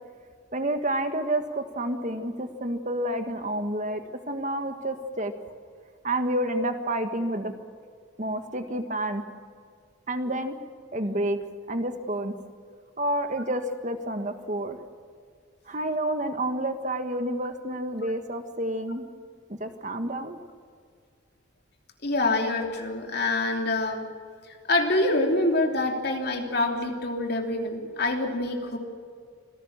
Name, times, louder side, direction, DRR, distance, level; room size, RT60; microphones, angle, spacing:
voice 1, 0.5-4.0 4.3-5.3 6.0-7.5 8.2-9.2 10.1-10.6 10.9-11.4 11.7-12.3 13.0-14.8 15.7-19.0 19.5-20.4, right 1 dB, 40° right, 8 dB, 1.5 m, -29 dB
voice 2, 22.0-24.1 24.7-28.8, left 2 dB, 50° left, 3 dB, 3.2 m, -26 dB
26.5 x 17.0 x 7.4 m, 2.1 s
head